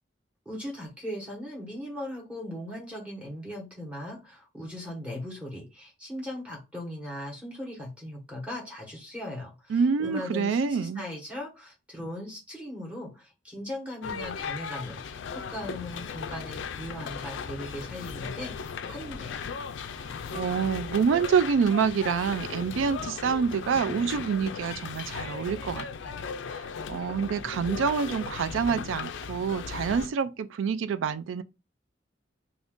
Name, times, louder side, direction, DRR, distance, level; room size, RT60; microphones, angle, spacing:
voice 1, 0.4-19.5, left 1 dB, 5° right, 1.0 m, -39 dB
voice 2, 9.7-11.0 20.3-26.1 26.9-31.4, right 6 dB, 75° right, 0.3 m, -27 dB
sound 1, 14.0-30.1, left 6 dB, 65° left, 0.3 m, -37 dB
2.5 x 2.4 x 3.5 m
head